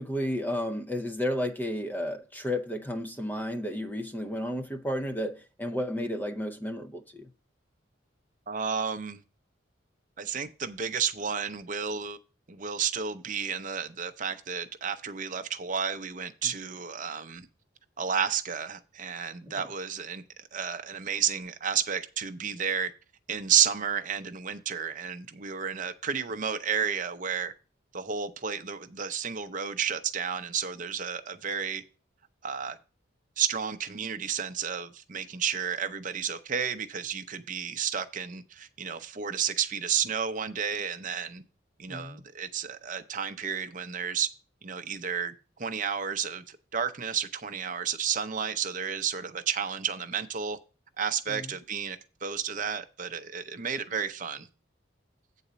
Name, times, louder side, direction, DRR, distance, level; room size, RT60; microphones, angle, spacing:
voice 1, 0.0-7.3 19.5-19.6 41.9-42.2 51.3-51.5, left 1 dB, 10° left, 0.5 m, -32 dB
voice 2, 8.5-9.2 10.2-12.2 12.5-17.5 18.0-20.2 20.5-22.9 23.3-27.5 27.9-31.8 32.4-32.8 33.4-41.4 41.8-44.3 44.6-45.3 45.6-50.6 51.0-54.5, right 7 dB, 40° right, 0.6 m, -31 dB
8.4 x 4.0 x 6.7 m
head